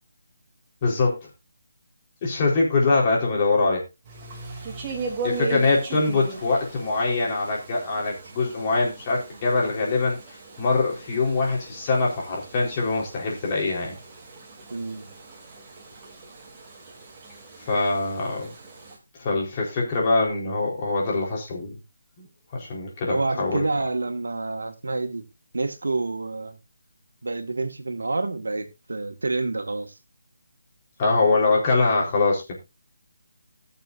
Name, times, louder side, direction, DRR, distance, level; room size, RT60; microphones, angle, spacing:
voice 1, 0.8-1.2 2.2-3.8 5.2-10.2 10.6-14.0 17.7-18.5 19.1-21.8 22.2-22.3 22.5-23.7 31.0-32.6, left 3 dB, 25° left, 4.2 m, -23 dB
sound 1, 4.0-19.0, right 4 dB, 20° right, 2.8 m, -39 dB
voice 2, 5.3-5.7 14.7-15.1 23.1-25.2 25.5-26.6 27.2-29.9, right 3 dB, 85° right, 1.8 m, -28 dB
19.5 x 6.9 x 2.6 m
hypercardioid pair, 165°, 0 cm